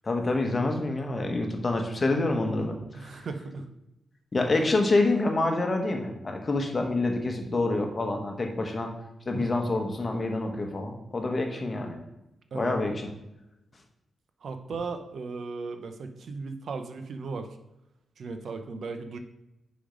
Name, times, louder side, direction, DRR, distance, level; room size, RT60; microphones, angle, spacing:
voice 1, 0.0-3.3 4.3-8.9 9.3-12.0 12.5-13.1, left 2 dB, 35° left, 3 dB, 1.2 m, -27 dB
voice 2, 2.9-3.7 9.3-9.6 12.5-12.8 14.4-17.5 18.2-19.2, right 4 dB, 65° right, 7 dB, 0.7 m, -36 dB
5.1 x 5.0 x 5.1 m, 0.90 s
cardioid pair, 70°, 0 cm